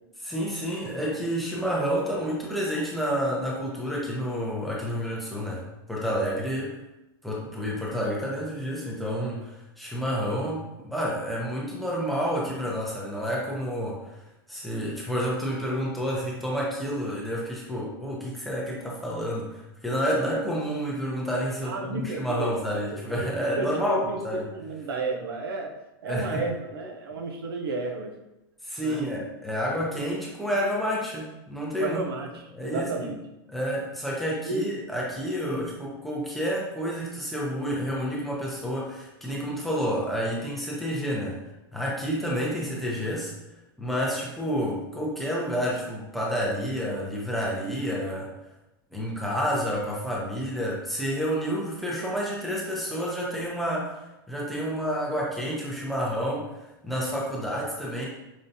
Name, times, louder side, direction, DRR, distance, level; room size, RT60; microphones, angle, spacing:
voice 1, 0.2-6.7 7.2-14.2 14.5-24.5 26.0-26.4 28.6-32.1 32.5-33.1 33.5-41.4 41.7-43.3 43.8-48.3 48.9-58.1, equal, ahead, -5 dB, 0.5 m, -29 dB
voice 2, 21.6-22.5 22.9-25.7 26.0-28.1 28.8-29.0 31.8-33.2 34.4-34.6 35.5-35.6 42.2-42.4, right 3 dB, 90° right, 2 dB, 0.7 m, -32 dB
5.2 x 2.2 x 2.7 m, 0.92 s
supercardioid pair, 165°, 12 cm